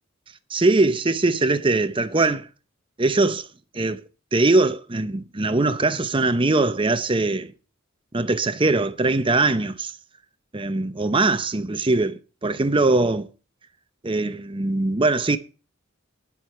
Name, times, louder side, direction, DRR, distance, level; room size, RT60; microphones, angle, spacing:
voice 1, 0.5-2.5 3.0-3.5 3.7-4.0 4.3-7.5 8.1-10.0 10.5-13.3 14.0-15.4, right 2 dB, 25° right, 0.7 m, -21 dB
10.5 x 7.7 x 5.7 m
head